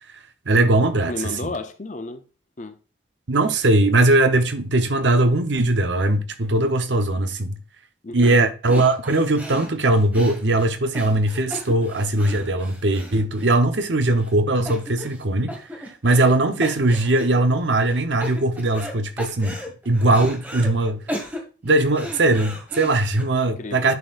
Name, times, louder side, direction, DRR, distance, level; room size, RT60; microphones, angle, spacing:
voice 1, 0.5-1.1 1.4-1.5 3.3-7.6 8.1-19.5 19.9-21.0 21.6-23.9, right 2 dB, 75° right, 0.9 m, -20 dB
voice 2, 1.1-2.2 2.6-2.8 8.0-8.4 23.4-23.9, left 2 dB, 40° left, 0.6 m, -32 dB
sound 1, 8.2-8.4 8.7-13.9 14.2-14.3 14.6-15.2 15.5-16.3 16.6-17.4 17.8-18.9 19.2-20.7 21.1-23.2, left 1 dB, 10° right, 1.5 m, -35 dB
11.0 x 4.5 x 2.5 m
head